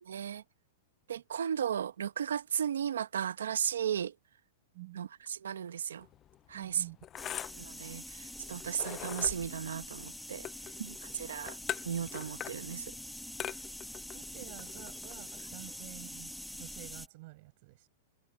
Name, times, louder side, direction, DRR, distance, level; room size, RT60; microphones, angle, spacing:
voice 1, 0.0-0.4 1.1-4.1 4.9-6.1 6.5-6.8 7.5-10.5 10.8-11.6 11.8-12.9, right 8 dB, 90° right, 1.3 m, -35 dB
sound 1, 6.0-15.8, left 11 dB, 30° left, 0.4 m, -44 dB
voice 2, 6.5-7.0 10.6-11.3 14.1-17.9, right 23 dB, 55° right, 7.1 m, -50 dB
sound 2, 7.2-17.1, left 1 dB, ahead, 1.5 m, -45 dB
hypercardioid pair, 130°, 0 cm